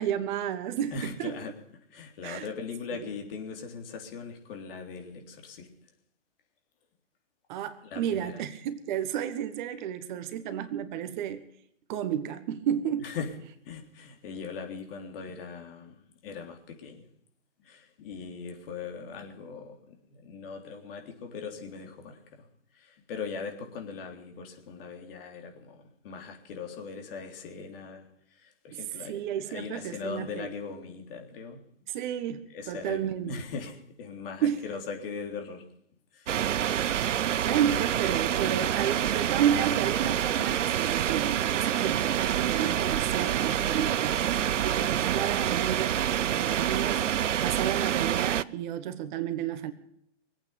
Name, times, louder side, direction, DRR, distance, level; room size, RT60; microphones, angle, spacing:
voice 1, 0.0-1.3 2.2-2.5 2.9-3.0 7.5-11.4 11.9-13.0 29.1-30.5 31.9-33.3 34.4-34.6 37.2-44.2 44.6-46.0 46.3-49.7, right 9 dB, 40° right, 11 dB, 1.3 m, -31 dB
voice 2, 0.9-1.5 1.9-5.7 7.8-8.4 13.0-13.4 13.6-17.1 17.6-22.5 22.7-29.2 29.5-31.7 32.5-35.7 36.1-36.5 42.8-43.1, left 5 dB, 50° left, 3 dB, 3.6 m, -40 dB
sound 1, 36.3-48.4, right 10 dB, 75° right, 0.6 m, -27 dB
22.5 x 8.9 x 6.8 m, 0.73 s
hypercardioid pair, 125°, 37 cm